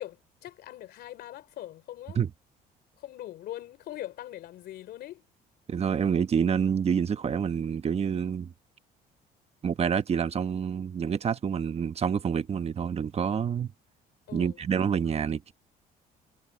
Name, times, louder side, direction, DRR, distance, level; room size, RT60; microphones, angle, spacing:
voice 1, 0.0-2.2 3.0-5.2 14.3-14.6, left 13 dB, 70° left, 3.3 m, -41 dB
voice 2, 5.7-8.5 9.6-13.7 14.3-15.5, right 7 dB, 40° right, 1.2 m, -27 dB
cardioid pair, 110°, 17 cm